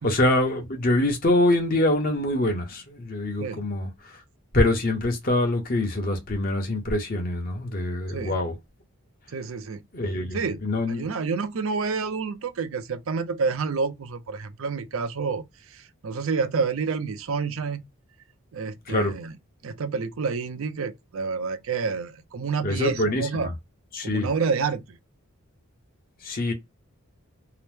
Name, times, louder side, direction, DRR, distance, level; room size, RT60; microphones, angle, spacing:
voice 1, 0.0-3.9 4.5-8.5 9.9-11.0 18.9-19.1 22.6-23.5 23.9-24.3 26.2-26.5, left 1 dB, 40° left, 0.8 m, -24 dB
voice 2, 9.3-9.8 10.3-10.6 10.9-15.4 15.7-17.8 18.5-19.3 19.6-23.5 24.0-25.0, right 5 dB, 70° right, 0.5 m, -28 dB
2.8 x 2.0 x 3.2 m
head